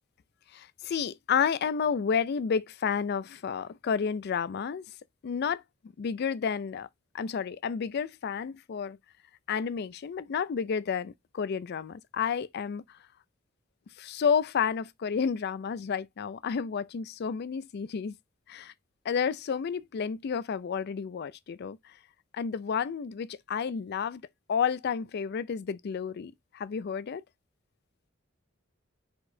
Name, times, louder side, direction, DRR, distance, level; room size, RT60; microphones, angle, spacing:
voice 1, 0.5-4.8 5.2-5.6 6.0-6.9 7.1-9.0 9.5-13.0 14.0-18.2 18.5-18.7 19.0-21.9 22.3-24.2 24.5-27.2, left 6 dB, 55° left, 0.4 m, -31 dB
4.6 x 4.0 x 2.6 m
head